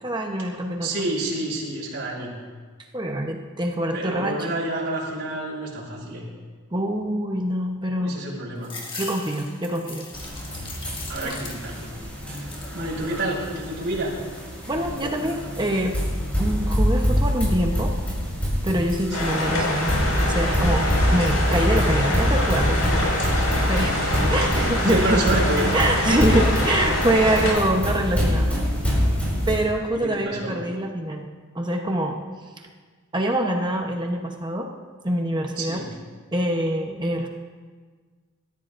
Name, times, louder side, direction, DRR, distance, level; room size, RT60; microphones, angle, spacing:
voice 1, 0.0-1.1 2.9-4.5 6.7-8.2 9.0-10.1 11.2-11.4 14.7-15.9 16.4-17.9 18.6-19.9 20.2-23.1 23.6-24.0 24.3-25.2 25.7-28.6 29.5-31.3 31.5-32.2 33.1-34.7 35.0-35.8 36.3-37.3, right 1 dB, 20° right, 2 dB, 1.0 m, -25 dB
voice 2, 0.8-2.3 3.9-6.2 8.0-8.7 11.1-11.9 12.3-12.5 12.7-14.1 19.2-19.4 23.9-24.5 24.8-26.1 30.0-30.6 35.6-35.9, right 2 dB, 55° right, -4 dB, 5.6 m, -29 dB
sound 1, 8.6-11.9 12.2-12.8 13.3-14.0, left 3 dB, 20° left, 1.8 m, -39 dB
sound 2, 10.1-29.6, equal, 5° left, 5.0 m, -25 dB
sound 3, 19.1-27.5, left 1 dB, 70° left, 5.5 m, -25 dB
25.5 x 14.0 x 2.6 m, 1.5 s
head